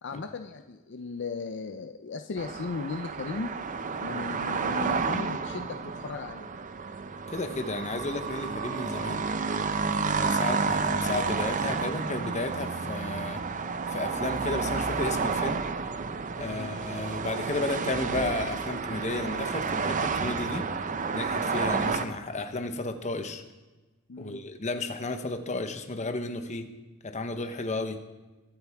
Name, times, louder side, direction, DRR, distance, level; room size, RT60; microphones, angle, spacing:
voice 1, 0.0-3.5 4.0-6.5 16.4-16.7 24.1-24.4, left 4 dB, 60° left, 7 dB, 0.5 m, -36 dB
sound 1, 2.4-22.0, right 5 dB, 40° right, 0.6 m, -31 dB
voice 2, 7.3-9.3 9.9-13.4 13.9-15.6 16.4-20.7 21.1-23.4 24.2-26.7 27.0-28.0, left 2 dB, 35° left, 7 dB, 0.9 m, -33 dB
22.0 x 8.3 x 3.5 m, 1.1 s
head